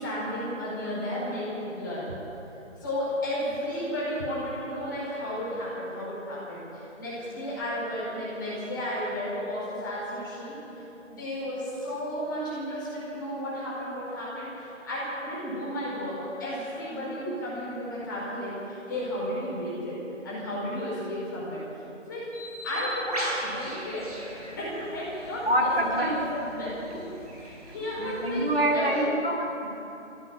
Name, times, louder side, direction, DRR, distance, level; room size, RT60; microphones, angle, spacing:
voice 1, 0.0-2.0 2.8-10.5 11.1-20.0 20.2-21.6 22.1-22.3 22.6-24.1 24.5-27.1 27.4-28.5 28.7-28.9, equal, 15° left, -7 dB, 4.8 m, -33 dB
Bird, 22.3-28.8, equal, 30° right, 5.4 m, -39 dB
voice 2, 25.5-26.2 28.0-29.7, right 1 dB, 50° right, -1 dB, 3.4 m, -26 dB
17.0 x 16.5 x 9.4 m, 2.9 s
figure-of-eight pair, 175°, 38 cm